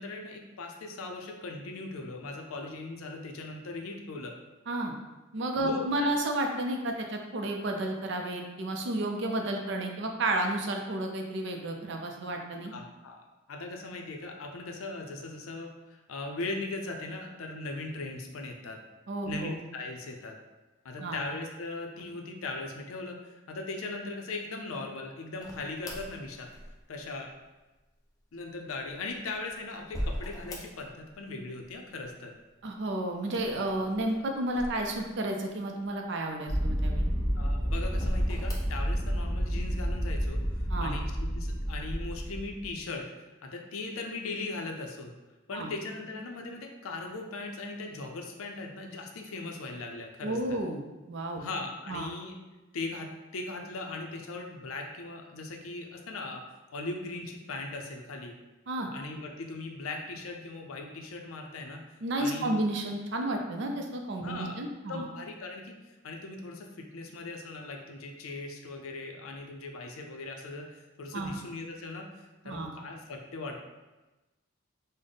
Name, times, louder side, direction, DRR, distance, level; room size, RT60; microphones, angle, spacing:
voice 1, 0.0-4.3 5.6-6.1 12.7-18.8 19.3-20.4 20.8-26.5 26.9-27.3 28.3-32.3 37.3-43.1 43.4-45.1 45.5-50.6 51.4-52.3 52.7-56.4 56.7-58.4 58.9-62.6 64.2-64.6 64.9-73.7, left 3 dB, 80° left, 2 dB, 0.5 m, -39 dB
voice 2, 5.3-12.7 19.1-19.5 21.0-21.2 32.6-37.0 40.7-40.9 45.5-45.7 50.2-50.8 51.1-51.4 51.9-52.1 58.7-58.9 62.0-65.0 71.1-71.3 72.4-72.7, right 1 dB, 55° right, 3 dB, 0.4 m, -31 dB
sound 1, 25.4-27.1 28.9-31.1 31.4-32.1 33.2-35.4 36.0-36.1 36.9-37.4 37.9-38.9, equal, 15° left, 0.3 m, -38 dB
sound 2, 36.5-42.7, equal, ahead, 1.0 m, -30 dB
3.4 x 2.0 x 3.8 m, 1.1 s
head